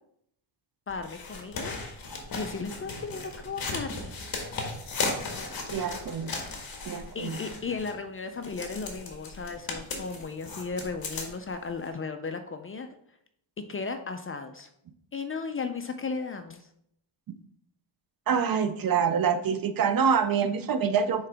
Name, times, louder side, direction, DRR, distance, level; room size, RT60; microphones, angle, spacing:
sound 1, 0.9-7.9 8.4-11.5 11.9-12.0, left 3 dB, 50° left, 1.5 m, -36 dB
voice 1, 0.9-1.8 2.3-4.1 7.1-12.9 13.7-14.7 15.1-16.7, left 4 dB, 30° left, 7 dB, 0.4 m, -35 dB
voice 2, 5.7-6.3 6.8-7.4 18.3-21.3, right 6 dB, 50° right, 11 dB, 0.5 m, -26 dB
9.4 x 3.8 x 3.4 m, 0.72 s
wide cardioid pair, 145°, 47 cm